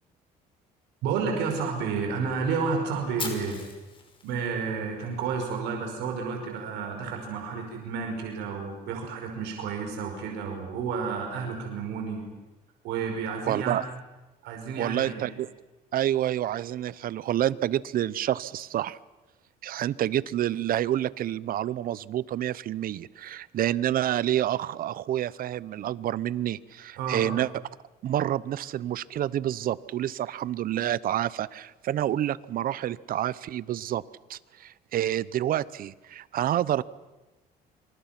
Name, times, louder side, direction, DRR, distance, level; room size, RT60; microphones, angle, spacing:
voice 1, 1.0-3.6 4.2-12.2 12.8-13.8 14.4-15.3 27.0-27.3, right 5 dB, 85° right, 2 dB, 5.3 m, -31 dB
Fire, 3.2-5.2, left 4 dB, 30° left, 5.7 m, -39 dB
voice 2, 13.5-13.8 14.8-15.5 15.9-19.0 19.6-27.5 28.0-34.0 34.3-36.8, right 12 dB, 60° right, 19 dB, 0.8 m, -28 dB
27.0 x 26.5 x 6.0 m, 1.1 s
cardioid pair, 110°, 17 cm